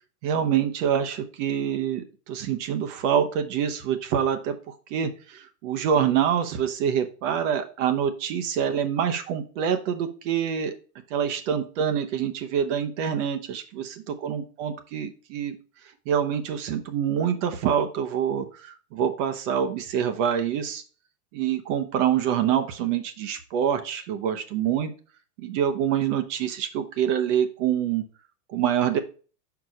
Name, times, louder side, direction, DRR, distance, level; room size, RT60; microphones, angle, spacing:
voice 1, 0.2-10.7 11.1-15.6 16.1-20.8 21.3-24.9 25.4-28.0 28.5-29.0, right 8 dB, 50° right, 8 dB, 1.0 m, -26 dB
5.1 x 4.8 x 5.1 m, 0.38 s
hypercardioid pair, 130°, 48 cm